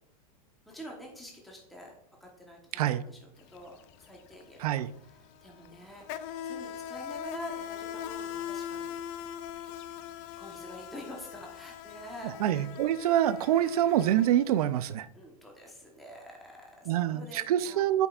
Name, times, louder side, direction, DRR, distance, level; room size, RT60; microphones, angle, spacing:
voice 1, 0.7-1.9 2.2-9.0 10.4-12.7 13.5-13.9 15.1-18.1, equal, ahead, 1.0 m, -47 dB
voice 2, 2.7-3.0 4.6-4.9 12.4-15.1 16.9-18.1, right 11 dB, 70° right, 0.5 m, -26 dB
Insect, 3.4-3.6 3.8-14.8, left 9 dB, 35° left, 0.3 m, -41 dB
9.5 x 5.3 x 2.4 m
supercardioid pair, 145°, 20 cm